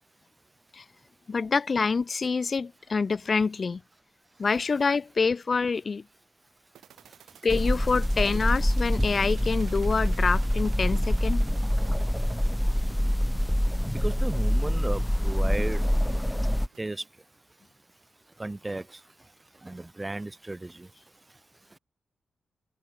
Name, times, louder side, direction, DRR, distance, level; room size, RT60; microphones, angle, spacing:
voice 1, 1.3-3.8 4.4-6.0 7.4-11.4, left 4 dB, 50° left, 3.1 m, -26 dB
sound 1, 6.8-16.8, right 10 dB, 85° right, 6.8 m, -52 dB
sound 2, 7.5-16.7, equal, 5° left, 2.6 m, -25 dB
voice 2, 13.9-15.8 16.8-17.0 18.4-18.8 19.6-20.9, right 2 dB, 25° right, 4.5 m, -34 dB
supercardioid pair, 50°, 0 cm